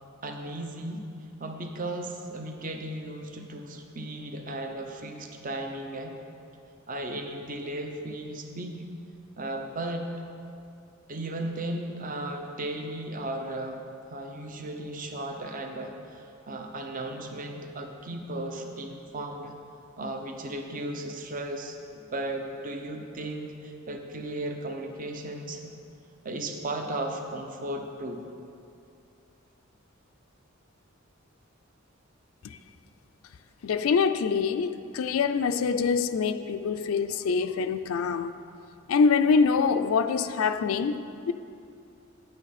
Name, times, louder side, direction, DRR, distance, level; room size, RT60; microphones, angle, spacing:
voice 1, 0.2-1.1 1.4-6.2 6.9-8.9 9.4-10.1 11.1-13.8 14.1-19.5 20.0-21.8 22.0-25.7 26.2-28.3, right 1 dB, 40° right, 0.7 m, -35 dB
voice 2, 33.6-38.3 38.9-41.3, left 5 dB, 85° left, 0.4 m, -25 dB
9.8 x 8.5 x 4.1 m
head